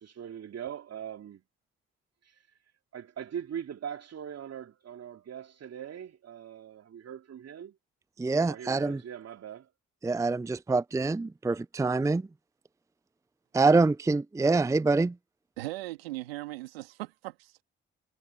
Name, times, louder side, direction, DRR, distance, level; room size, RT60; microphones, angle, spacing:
voice 1, 0.0-1.4 2.9-7.8 8.5-9.7, right 9 dB, 60° right, 3.2 m, -41 dB
voice 2, 8.2-9.0 10.0-12.2 13.5-15.1, right 3 dB, 10° right, 0.5 m, -25 dB
voice 3, 15.6-17.6, right 18 dB, 90° right, 2.2 m, -38 dB
hypercardioid pair, 40°, 29 cm